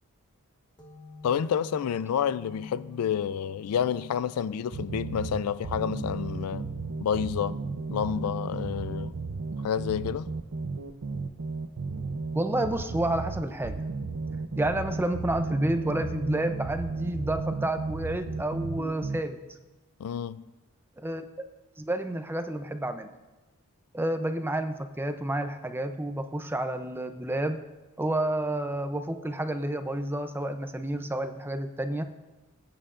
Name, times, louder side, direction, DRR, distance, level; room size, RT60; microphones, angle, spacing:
sound 1, 0.8-8.1, left 3 dB, 20° left, 1.2 m, -51 dB
voice 1, 1.2-6.7 7.0-7.6 7.9-9.1 9.6-10.3 20.0-20.4, left 8 dB, 80° left, 0.3 m, -29 dB
sound 2, 4.7-19.2, right 3 dB, 65° right, 0.6 m, -34 dB
voice 2, 12.3-13.8 14.6-19.4 21.0-21.2 21.8-23.1 23.9-27.6 28.0-32.0, right 1 dB, 10° right, 0.5 m, -30 dB
19.5 x 8.8 x 2.5 m
head